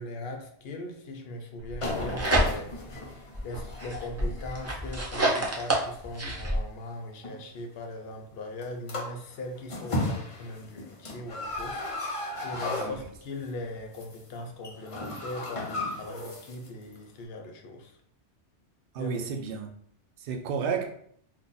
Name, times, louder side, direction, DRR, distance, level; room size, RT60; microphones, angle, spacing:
voice 1, 0.0-2.8 3.4-18.0 19.0-19.3, left 1 dB, 70° left, 3 dB, 0.8 m, -40 dB
sound 1, 1.7-2.9 3.3-6.6, right 1 dB, 25° right, 0.3 m, -28 dB
sound 2, 1.8-6.6 7.2-7.4 8.6-8.7 8.9-9.2 9.6-13.4 13.8-14.2 14.4-16.7 16.9-17.0, left 2 dB, 35° left, 0.6 m, -35 dB
voice 2, 18.9-19.7 20.2-20.9, right 6 dB, 65° right, 4 dB, 0.7 m, -31 dB
2.7 x 2.5 x 3.8 m, 0.64 s
omnidirectional pair, 1.1 m